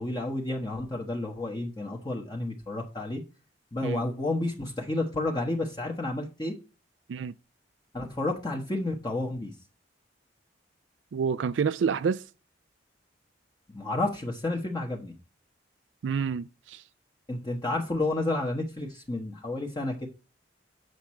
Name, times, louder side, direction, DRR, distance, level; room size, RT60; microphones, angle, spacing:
voice 1, 0.0-3.2 3.7-6.5 7.9-9.5 13.7-15.1 17.3-20.1, left 2 dB, 25° left, 1.1 m, -31 dB
voice 2, 11.1-12.2 16.0-16.8, right 6 dB, 90° right, 0.4 m, -28 dB
7.9 x 5.9 x 4.3 m
head